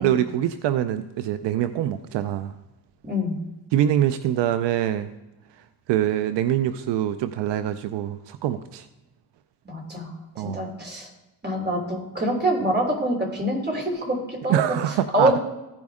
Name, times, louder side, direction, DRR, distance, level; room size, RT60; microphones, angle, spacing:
voice 1, 0.0-2.5 3.7-5.1 5.9-8.8 10.4-10.6 14.5-15.3, right 11 dB, 80° right, 11 dB, 0.6 m, -24 dB
voice 2, 3.0-3.4 9.6-11.1 11.4-15.4, right 1 dB, 25° right, 0 dB, 3.3 m, -26 dB
15.0 x 5.3 x 3.5 m, 1.0 s
cardioid pair, 85°, 41 cm